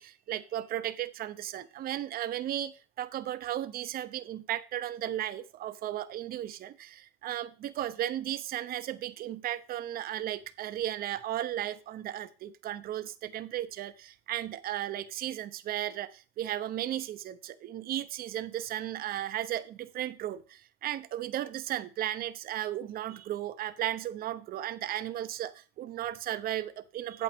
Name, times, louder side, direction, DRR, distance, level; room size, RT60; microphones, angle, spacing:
voice 1, 0.0-27.2, right 12 dB, 60° right, 12 dB, 0.7 m, -35 dB
8.6 x 7.8 x 3.5 m, 0.34 s
cardioid pair, 110°, 17 cm